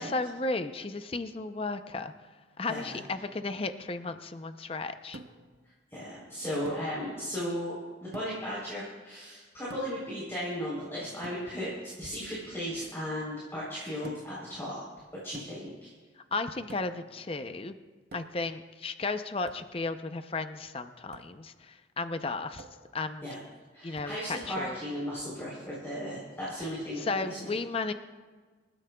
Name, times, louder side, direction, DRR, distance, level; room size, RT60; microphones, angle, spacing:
voice 1, 0.0-2.1 2.6-5.2 16.3-17.7 18.1-22.7 22.9-23.3 23.8-24.8 27.1-27.9, left 3 dB, 30° left, 9 dB, 0.6 m, -34 dB
voice 2, 2.7-3.0 5.9-14.8 15.1-15.9 23.2-23.4 23.7-27.5, equal, 15° left, -7 dB, 3.6 m, -36 dB
sound 1, 5.1-5.6 6.7-6.9 8.1-8.5 9.7-10.1 11.2-11.5 14.0-14.4 15.3-15.8 16.7-17.1 18.1-18.5 19.5-19.7 21.1-21.4 22.6-22.9 23.9-24.2, right 2 dB, 55° right, 0.9 m, -48 dB
27.0 x 13.0 x 2.3 m, 1.4 s
head